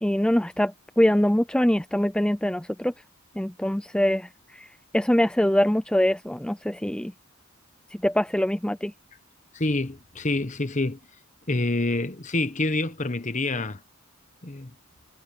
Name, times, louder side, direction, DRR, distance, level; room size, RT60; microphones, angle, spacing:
voice 1, 0.0-2.9 3.4-4.7 4.9-7.1 8.0-8.9, equal, 5° left, 0.5 m, -23 dB
voice 2, 9.5-11.0 11.5-13.8 14.4-14.7, left 2 dB, 35° left, 1.1 m, -27 dB
head